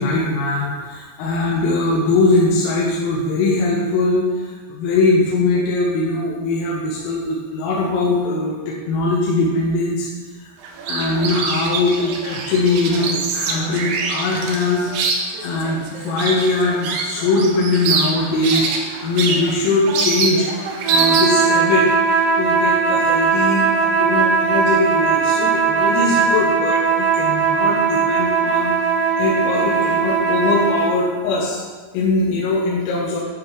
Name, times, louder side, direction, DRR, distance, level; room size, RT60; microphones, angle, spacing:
voice 1, 0.0-10.1 10.4-10.5 10.9-28.8 29.2-31.6 31.9-33.2, left 2 dB, 85° left, -5 dB, 3.7 m, -21 dB
sound 1, 10.6-21.5, right 4 dB, 90° right, 2.3 m, -24 dB
sound 2, 20.8-31.0, right 5 dB, 75° right, 1.4 m, -18 dB
10.5 x 4.2 x 4.7 m, 1.5 s
omnidirectional pair, 5.9 m